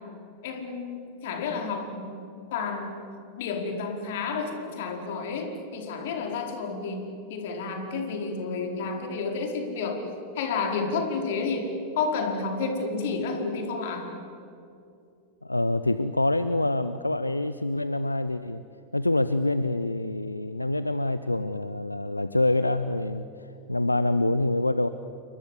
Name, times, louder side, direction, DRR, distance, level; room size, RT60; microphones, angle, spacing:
voice 1, 0.4-2.1 2.5-3.1 3.4-10.0 10.3-14.1, left 4 dB, 55° left, 4 dB, 4.8 m, -30 dB
voice 2, 15.4-18.6 18.9-24.9, left 2 dB, 85° left, 13 dB, 0.7 m, -26 dB
29.5 x 24.0 x 8.4 m, 2.5 s
figure-of-eight pair, 90°, 0 cm